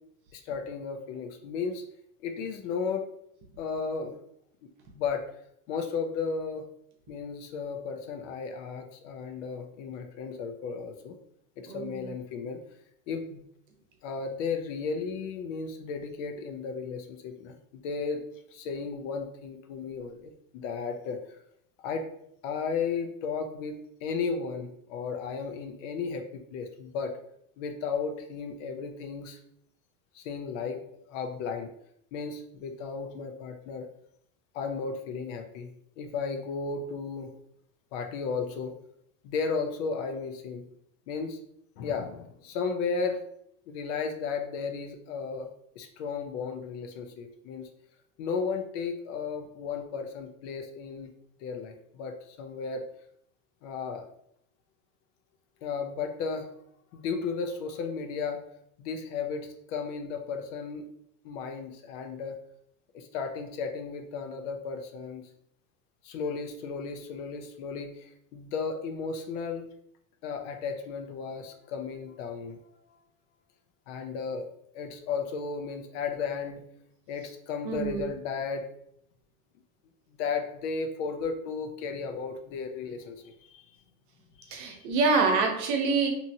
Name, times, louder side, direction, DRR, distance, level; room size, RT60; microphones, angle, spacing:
voice 1, 0.3-1.8 2.2-3.1 3.6-4.1 4.9-5.2 5.7-6.7 7.1-11.2 11.6-12.6 13.1-13.4 14.0-18.2 18.5-21.4 21.8-22.0 22.4-27.1 27.6-29.4 30.1-30.8 31.1-31.7 32.1-33.9 34.5-35.7 36.0-37.3 37.9-38.7 39.2-40.7 41.1-41.4 41.8-43.2 43.7-45.5 45.8-47.7 48.2-51.1 51.4-52.8 53.6-54.1 55.6-56.5 56.9-58.4 58.8-60.9 61.2-62.4 62.9-65.3 66.0-69.7 70.2-73.0 73.9-74.5 74.7-76.6 77.1-78.6 80.1-83.6 84.4-84.5, left 5 dB, 65° left, 6 dB, 0.6 m, -34 dB
voice 2, 11.7-12.1 77.6-78.0 84.5-86.1, right 4 dB, 65° right, 3 dB, 0.8 m, -26 dB
2.7 x 2.7 x 2.6 m, 0.71 s
supercardioid pair, 160°, 39 cm